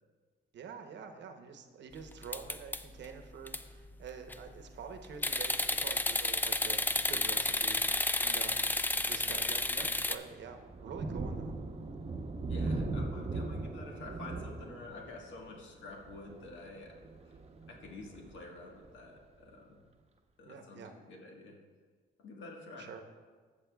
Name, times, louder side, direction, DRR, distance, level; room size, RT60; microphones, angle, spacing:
voice 1, 0.5-8.6 9.0-11.5 20.4-20.9 22.8-23.1, right 6 dB, 65° right, 6 dB, 0.9 m, -47 dB
sound 1, 2.2-3.1 3.5-3.6 4.1-4.5 5.2-10.2, left 2 dB, 10° left, 0.3 m, -31 dB
Thunder, 7.1-7.5 8.0-8.2 8.6-19.2, right 3 dB, 35° right, 0.8 m, -40 dB
voice 2, 12.4-17.0 17.3-17.4 17.7-19.8 20.4-21.6 22.2-22.9, left 2 dB, 70° left, 0 dB, 1.5 m, -49 dB
14.5 x 7.1 x 2.3 m, 1.5 s
cardioid pair, 90°, 20 cm